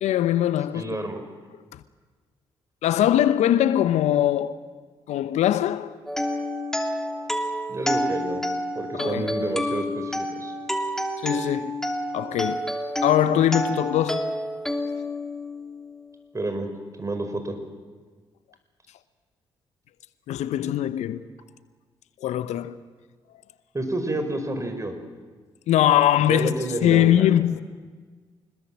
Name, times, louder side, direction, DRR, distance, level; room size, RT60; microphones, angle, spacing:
voice 1, 0.0-1.0 1.7-1.8 2.8-4.6 5.1-6.0 8.9-9.3 11.2-11.8 12.1-12.8 13.0-14.3 20.3-21.2 22.2-22.8 25.7-26.5 26.8-27.6, left 11 dB, 70° left, 0.9 m, -21 dB
voice 2, 0.7-1.2 7.7-8.5 8.8-10.5 16.3-16.7 17.0-17.6 23.7-24.9 26.3-27.3, right 2 dB, 25° right, 5.1 m, -29 dB
sound 1, 6.1-16.0, equal, 5° left, 3.1 m, -29 dB
25.5 x 21.0 x 7.6 m
hypercardioid pair, 45°, 12 cm